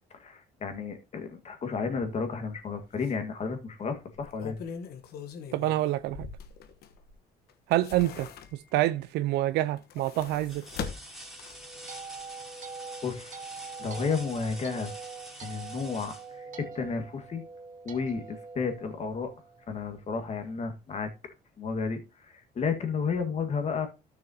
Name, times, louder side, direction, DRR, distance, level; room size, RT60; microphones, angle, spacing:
voice 1, 0.1-4.6 13.0-13.4 13.8-14.9 15.4-17.4 17.8-19.3 19.7-21.1 21.6-23.9, left 5 dB, 40° left, 1.8 m, -32 dB
sound 1, 2.5-2.6 3.0-3.1 4.1-7.1 7.5-8.8 9.7-11.8 12.2-12.3, left 6 dB, 70° left, 1.2 m, -41 dB
voice 2, 5.5-6.3 7.7-8.3 8.7-10.6, right 15 dB, 90° right, 0.6 m, -27 dB
sound 2, 8.7-9.2 9.7-9.8 10.4-17.1 18.9-19.0 19.5-20.5 21.9-22.0, equal, ahead, 3.0 m, -48 dB
sound 3, 11.3-19.7, right 5 dB, 50° right, 1.4 m, -44 dB
13.0 x 6.3 x 2.8 m
cardioid pair, 110°, 17 cm